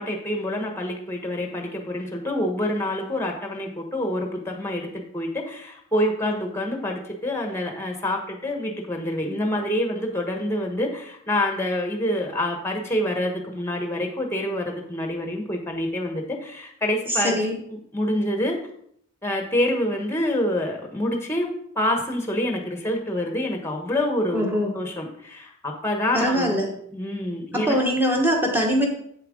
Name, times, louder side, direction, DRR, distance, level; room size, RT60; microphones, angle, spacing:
voice 1, 0.0-17.4 17.7-18.6 19.2-21.5 21.7-24.4 24.7-26.6 26.9-27.8, left 1 dB, 10° left, 2 dB, 1.1 m, -27 dB
voice 2, 17.1-17.5 24.3-24.7 26.1-26.7 27.5-28.9, equal, 10° right, 1 dB, 1.3 m, -22 dB
8.0 x 7.6 x 3.7 m, 0.68 s
head